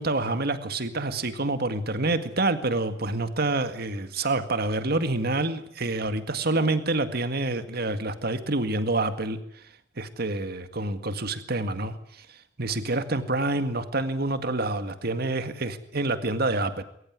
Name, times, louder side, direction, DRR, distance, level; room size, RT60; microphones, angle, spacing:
voice 1, 0.0-9.4 10.0-12.3 12.6-16.8, right 2 dB, 55° right, 9 dB, 1.9 m, -27 dB
22.0 x 18.5 x 9.6 m, 0.71 s
head